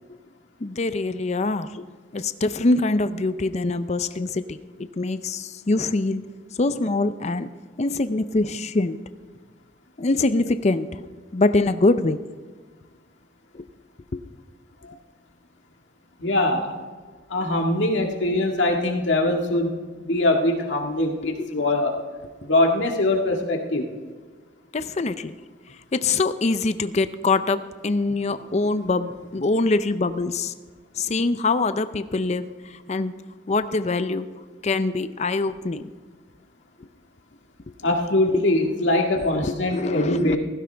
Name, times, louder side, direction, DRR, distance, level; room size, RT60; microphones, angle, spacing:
voice 1, 0.6-1.9 2.1-4.6 5.0-6.2 6.6-7.5 7.8-9.0 10.0-11.0 11.3-12.2 13.5-13.7 14.1-14.2 21.2-21.5 22.4-22.5 24.7-25.4 25.9-30.5 31.0-32.5 32.9-33.1 33.5-34.3 34.6-35.8 38.2-38.4 39.2-40.4, left 3 dB, 35° left, 12 dB, 0.5 m, -24 dB
voice 2, 16.2-16.8 17.3-22.0 22.4-23.9 37.8-40.4, left 1 dB, 80° left, 2 dB, 1.9 m, -22 dB
16.5 x 15.5 x 3.4 m, 1.4 s
head